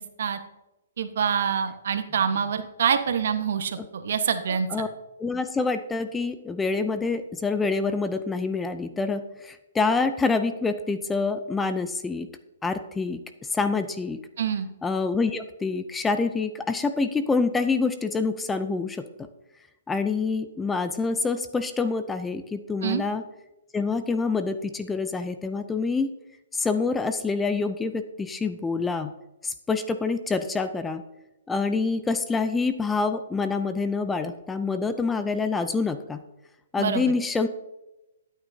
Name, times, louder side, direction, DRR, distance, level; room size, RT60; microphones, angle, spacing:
voice 1, 1.0-4.7 14.4-14.7 22.8-23.0 36.8-37.0, right 7 dB, 65° right, 8 dB, 1.1 m, -25 dB
voice 2, 4.5-4.9 5.2-12.3 12.6-13.2 13.5-14.2 14.8-19.0 19.9-23.2 23.7-26.1 26.5-29.1 29.4-31.0 31.5-36.2 36.7-37.5, left 4 dB, 10° left, 10 dB, 0.5 m, -26 dB
13.0 x 8.9 x 2.7 m, 0.95 s
hypercardioid pair, 145°, 0 cm